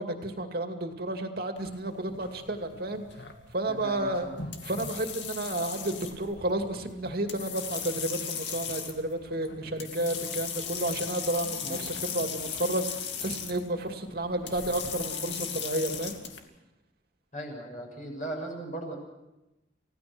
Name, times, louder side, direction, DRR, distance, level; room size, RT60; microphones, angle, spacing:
voice 1, 0.0-3.0 3.5-4.3 4.6-16.2, right 1 dB, 55° right, 5 dB, 2.5 m, -31 dB
sound 1, 1.6-16.4, left 7 dB, 75° left, 2.4 m, -38 dB
voice 2, 3.7-4.3 11.6-11.8 17.3-19.0, right 1 dB, 45° left, 0 dB, 6.8 m, -38 dB
30.0 x 17.0 x 6.2 m, 0.97 s
head